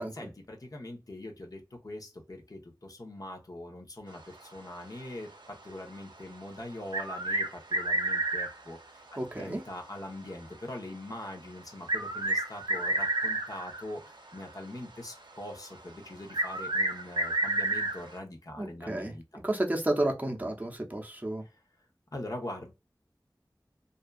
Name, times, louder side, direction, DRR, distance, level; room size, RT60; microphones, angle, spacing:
voice 1, 0.0-9.0 9.4-19.4 22.1-22.7, left 1 dB, 50° left, 0.8 m, -42 dB
sound 1, 6.9-8.5 10.3-10.4 11.9-13.8 16.3-18.0, right 2 dB, 75° right, 0.5 m, -30 dB
voice 2, 9.2-9.6 18.6-19.1 19.4-21.4, right 1 dB, 20° right, 0.7 m, -31 dB
2.6 x 2.3 x 2.3 m
wide cardioid pair, 45°, 8 cm